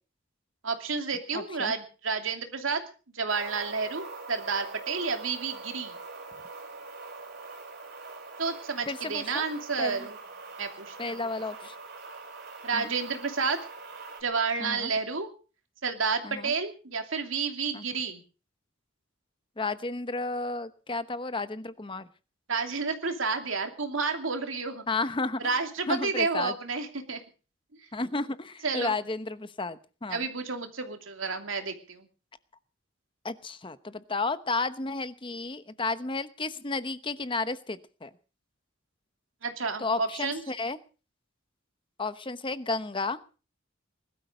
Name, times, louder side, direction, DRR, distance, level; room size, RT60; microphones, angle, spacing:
voice 1, 0.6-2.8 3.1-5.9 8.4-10.2 10.6-11.2 12.6-13.6 14.2-15.3 15.8-18.2 22.5-24.8 25.4-27.2 28.6-28.9 30.1-32.1 39.4-40.4, right 4 dB, 85° right, 5 dB, 2.8 m, -30 dB
voice 2, 1.3-1.7 8.9-9.4 9.8-10.1 11.0-11.8 12.7-12.9 14.6-14.9 16.2-16.5 17.7-17.9 19.6-22.1 24.9-25.6 25.9-26.5 27.9-30.2 33.2-38.1 39.8-40.8 42.0-43.2, left 3 dB, 25° left, 13 dB, 0.9 m, -32 dB
sound 1, 3.3-14.2, right 3 dB, 55° right, 4.1 m, -43 dB
20.5 x 12.5 x 5.1 m, 0.37 s
head